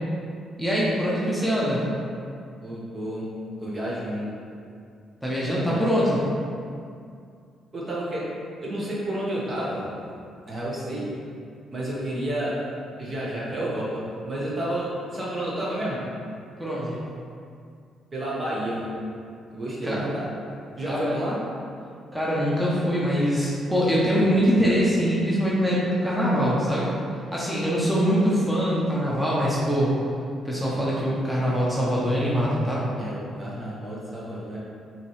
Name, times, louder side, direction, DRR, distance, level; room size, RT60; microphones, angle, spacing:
voice 1, 0.6-1.8 5.2-6.2 16.6-17.0 19.8-20.0 20.9-21.2 22.1-26.9 27.3-29.9 30.4-32.8, equal, ahead, -7 dB, 0.8 m, -23 dB
voice 2, 2.6-3.3 3.6-4.4 5.6-5.8 7.7-8.3 8.6-10.0 10.5-11.1 11.7-16.1 18.1-18.9 19.5-20.3 20.8-21.5 33.0-34.6, right 1 dB, 40° right, -6 dB, 1.2 m, -30 dB
5.0 x 2.9 x 3.2 m, 2.3 s
cardioid pair, 90°, 0 cm